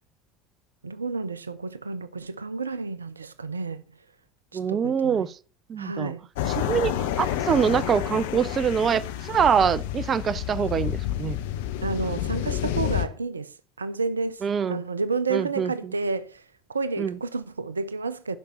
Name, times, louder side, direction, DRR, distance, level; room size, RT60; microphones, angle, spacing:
voice 1, 0.8-3.8 4.5-5.2 5.8-6.2 11.8-14.4 14.7-16.4 16.7-18.4, right 4 dB, 85° right, 0.5 m, -30 dB
voice 2, 4.5-5.3 5.7-6.1 6.5-11.4 14.4-14.8 15.3-15.9 17.0-17.2, right 7 dB, 35° right, 0.5 m, -24 dB
sound 1, 6.4-13.1, left 11 dB, 70° left, 0.9 m, -29 dB
11.5 x 5.2 x 5.9 m
figure-of-eight pair, 65°, 0 cm